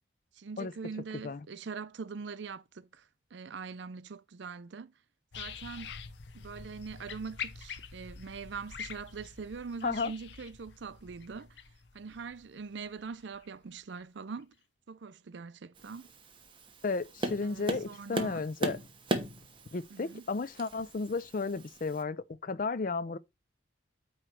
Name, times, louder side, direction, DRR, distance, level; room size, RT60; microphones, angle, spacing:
voice 1, 0.3-4.9 5.4-5.9 6.3-11.6 11.9-14.5 14.9-16.1 17.4-18.4 19.9-20.2, right 5 dB, 65° right, 0.5 m, -43 dB
sound 1, 5.3-13.5 14.0-14.1, left 6 dB, 65° left, 0.9 m, -45 dB
voice 2, 9.8-10.1 16.8-18.8 19.7-23.2, left 4 dB, 45° left, 0.5 m, -33 dB
Tap, 15.8-22.0, right 1 dB, 25° right, 1.1 m, -38 dB
9.0 x 3.1 x 6.2 m
head